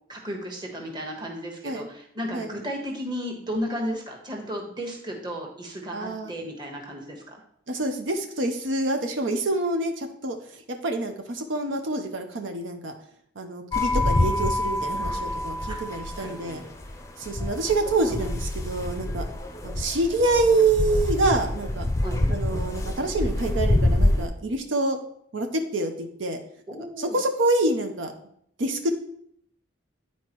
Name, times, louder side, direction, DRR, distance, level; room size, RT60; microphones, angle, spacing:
voice 1, 0.1-7.2 15.7-15.8 16.1-16.6 22.0-22.2 26.7-27.2, equal, 25° right, 0 dB, 1.2 m, -34 dB
voice 2, 5.9-6.3 7.7-10.4 10.7-12.9 13.4-16.6 17.2-19.2 19.6-21.9 22.3-25.0 25.3-26.4 27.0-28.1 28.6-28.9, right 2 dB, 90° right, 5 dB, 0.8 m, -26 dB
sound 1, 13.7-24.3, left 1 dB, 15° left, 0.5 m, -26 dB
10.5 x 4.2 x 3.0 m, 0.68 s
head